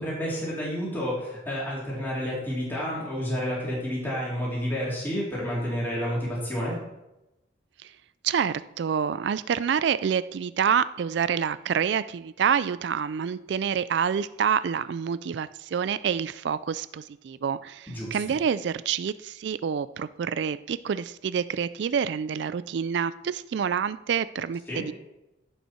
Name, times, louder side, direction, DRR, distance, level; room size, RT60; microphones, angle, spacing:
voice 1, 0.0-6.9 17.9-18.2 24.7-24.8, equal, 10° left, -7 dB, 3.3 m, -30 dB
voice 2, 8.2-24.9, right 7 dB, 65° right, 15 dB, 0.3 m, -27 dB
15.0 x 5.6 x 4.4 m, 0.95 s
head